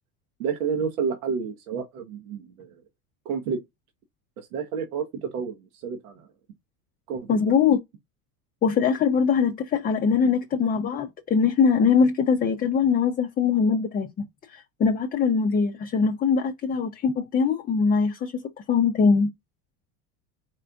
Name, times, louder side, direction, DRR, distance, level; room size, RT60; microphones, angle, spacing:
voice 1, 0.4-2.7 3.2-3.6 4.4-6.3 7.1-7.5, right 6 dB, 85° right, 1.0 m, -30 dB
voice 2, 7.3-7.8 8.6-18.4 18.7-19.3, left 6 dB, 20° left, 0.4 m, -22 dB
4.3 x 2.4 x 3.3 m
hypercardioid pair, 95°, 43 cm